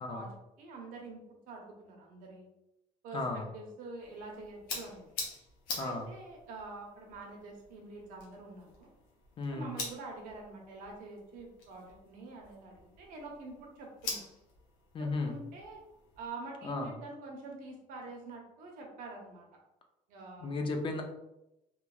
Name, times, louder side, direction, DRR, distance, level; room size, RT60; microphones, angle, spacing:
voice 1, 0.1-2.5 3.0-5.1 5.8-8.9 9.5-14.3 15.0-15.8 16.2-19.5 20.1-20.5, right 3 dB, 75° right, 0 dB, 0.8 m, -46 dB
voice 2, 3.1-3.4 5.8-6.0 9.4-9.7 14.9-15.3 16.6-16.9 20.4-21.0, left 3 dB, 35° left, 4 dB, 0.5 m, -34 dB
sound 1, 4.0-16.3, left 3 dB, 90° left, 0.9 m, -46 dB
3.0 x 2.2 x 2.3 m, 0.88 s
cardioid pair, 105°, 14 cm